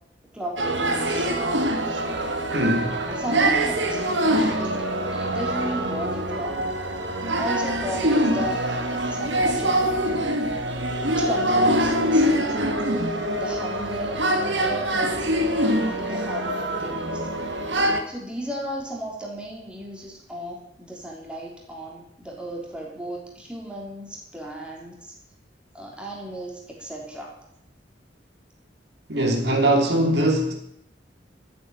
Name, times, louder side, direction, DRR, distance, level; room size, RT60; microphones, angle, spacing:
voice 1, 0.3-1.3 3.1-4.8 5.1-6.6 7.3-8.8 9.1-10.3 11.1-12.7 13.3-17.3 18.1-25.2 25.7-27.4, equal, 5° right, 3.5 m, -35 dB
sound 1, 0.6-18.0, right 1 dB, 85° right, 2.0 m, -24 dB
voice 2, 2.5-3.0 29.1-30.5, right 1 dB, 65° right, 3.1 m, -21 dB
13.0 x 8.1 x 9.2 m
head